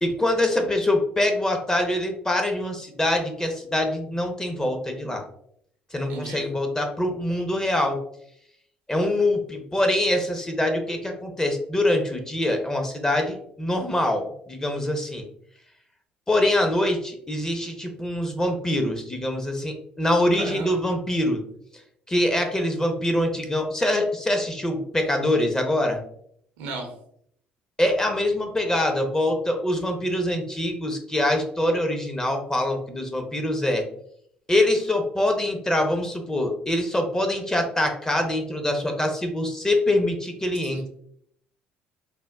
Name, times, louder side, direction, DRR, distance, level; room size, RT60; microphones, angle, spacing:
voice 1, 0.0-5.2 5.9-8.0 8.9-15.2 16.3-21.4 22.1-26.0 27.8-33.9 34.5-40.9, left 1 dB, 15° left, 4 dB, 0.6 m, -24 dB
voice 2, 6.1-6.5 20.4-20.7 26.6-26.9, right 3 dB, 80° right, 3 dB, 0.6 m, -33 dB
3.4 x 2.1 x 2.3 m, 0.68 s
hypercardioid pair, 65°, 4 cm